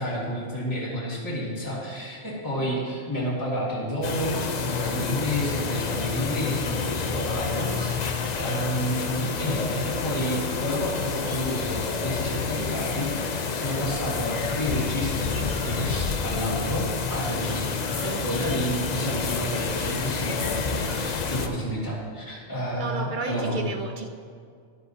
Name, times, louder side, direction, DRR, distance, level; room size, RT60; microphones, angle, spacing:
voice 1, 0.0-23.6, equal, 15° left, -8 dB, 2.2 m, -30 dB
sound 1, 4.0-21.5, left 5 dB, 45° left, 0.6 m, -29 dB
Chicken rooster, 15.4-16.0 17.0-17.1 17.5-18.2 19.0-19.6 20.3-21.0, right 2 dB, 65° right, 1.4 m, -47 dB
voice 2, 22.8-24.1, right 3 dB, 50° right, 5 dB, 0.6 m, -32 dB
13.0 x 11.0 x 2.8 m, 2.1 s
omnidirectional pair, 1.3 m